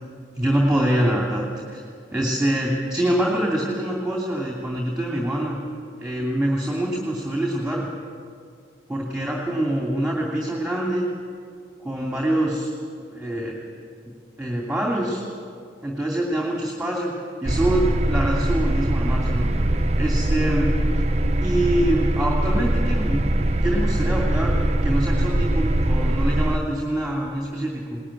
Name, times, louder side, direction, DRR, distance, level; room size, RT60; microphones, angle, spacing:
voice 1, 0.4-1.8 2.1-5.6 6.0-7.9 8.9-11.1 11.8-12.7 13.1-13.5 14.4-15.2 15.8-17.1 17.4-19.5 20.0-20.7 21.4-23.3 23.6-24.5 24.8-28.0, right 1 dB, 5° right, -2 dB, 2.8 m, -25 dB
sound 1, 17.4-26.6, right 1 dB, 35° right, 0.9 m, -22 dB
21.0 x 19.0 x 10.0 m, 2.2 s
head